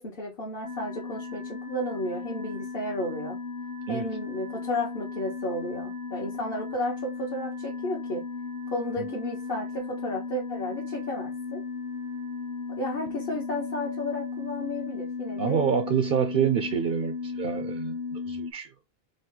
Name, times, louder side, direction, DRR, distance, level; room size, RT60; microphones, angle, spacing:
voice 1, 0.0-3.4 3.9-8.2 8.7-11.6 12.8-16.0, left 1 dB, 60° left, 1.3 m, -33 dB
sound 1, 0.6-18.5, left 4 dB, 45° left, 0.9 m, -35 dB
voice 2, 15.4-18.7, right 8 dB, 65° right, 0.7 m, -27 dB
5.1 x 2.1 x 3.7 m
omnidirectional pair, 1.1 m